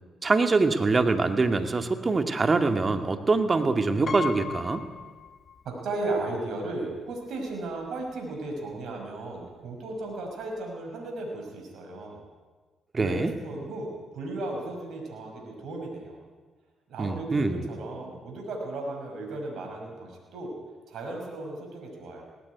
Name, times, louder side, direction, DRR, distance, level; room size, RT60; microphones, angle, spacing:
voice 1, 0.2-4.8 12.9-13.3 17.0-17.6, right 3 dB, 35° right, 7 dB, 2.3 m, -24 dB
Piano, 4.1-5.9 6.2-6.3 7.5-7.6 7.9-8.1, left 6 dB, 45° left, 1.4 m, -37 dB
voice 2, 5.6-12.2 13.0-16.2 16.9-20.5 20.9-22.2, right 2 dB, 70° right, 1 dB, 5.6 m, -35 dB
18.5 x 17.0 x 9.5 m, 1.4 s
hypercardioid pair, 55°, 0 cm